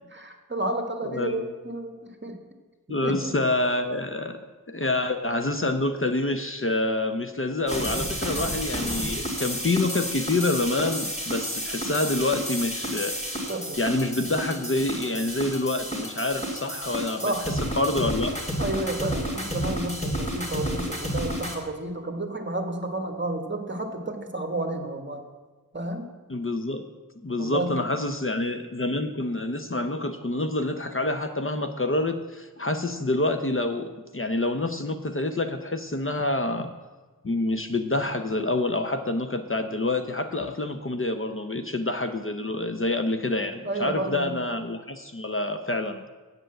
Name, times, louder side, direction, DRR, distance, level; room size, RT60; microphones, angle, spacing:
voice 1, 0.1-2.4 3.0-3.3 13.5-13.8 17.2-17.5 18.6-25.2 25.7-26.1 27.4-28.0 43.6-44.4, right 2 dB, 30° right, 5 dB, 1.4 m, -31 dB
voice 2, 1.0-1.4 2.9-13.2 13.8-17.3 17.6-18.4 26.3-26.8 27.2-36.7 37.2-46.1, left 2 dB, 35° left, 7 dB, 0.7 m, -27 dB
sound 1, 7.7-21.5, equal, 20° left, 2.3 m, -31 dB
7.9 x 7.7 x 7.6 m, 1.3 s
wide cardioid pair, 60°, 36 cm